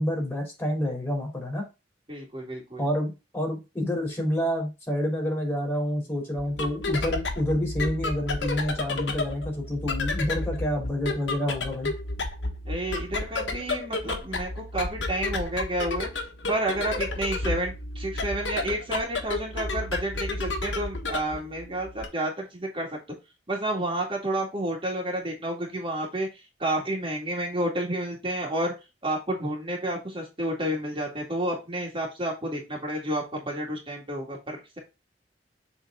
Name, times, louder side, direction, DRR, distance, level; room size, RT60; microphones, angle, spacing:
voice 1, 0.0-1.7 2.8-11.9, left 1 dB, 15° left, 0 dB, 3.1 m, -28 dB
voice 2, 2.1-2.8 12.7-16.1 16.5-23.0 23.5-26.3 26.6-28.7 29.0-34.8, right 1 dB, 30° right, -1 dB, 2.1 m, -30 dB
sound 1, 6.4-22.1, left 2 dB, 80° left, 1.4 m, -32 dB
7.2 x 3.9 x 3.7 m, 0.26 s
head